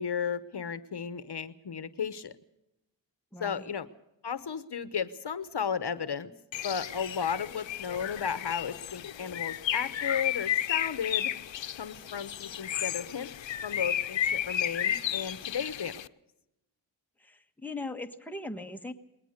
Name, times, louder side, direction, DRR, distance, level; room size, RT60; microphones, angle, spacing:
voice 1, 0.0-2.3 3.4-3.9 4.2-6.3 6.6-11.3 11.8-13.3 13.6-16.0, left 7 dB, 65° left, 14 dB, 1.0 m, -34 dB
voice 2, 3.3-3.7 17.2-18.9, left 2 dB, 5° left, 5 dB, 1.4 m, -39 dB
Bird, 6.5-16.1, left 10 dB, 85° left, 0.6 m, -33 dB
21.0 x 19.0 x 6.6 m, 0.88 s
wide cardioid pair, 100°, 44 cm